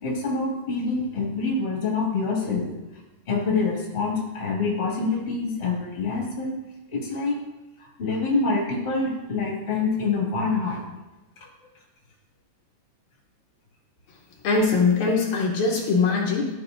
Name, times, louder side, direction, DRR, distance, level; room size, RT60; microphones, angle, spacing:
voice 1, 0.0-2.6 3.3-6.5 6.9-7.3 8.0-10.8, left 3 dB, 25° left, -4 dB, 1.8 m, -26 dB
voice 2, 14.4-16.5, left 4 dB, 75° left, -2 dB, 2.3 m, -21 dB
13.0 x 5.3 x 2.6 m, 1.1 s
omnidirectional pair, 3.6 m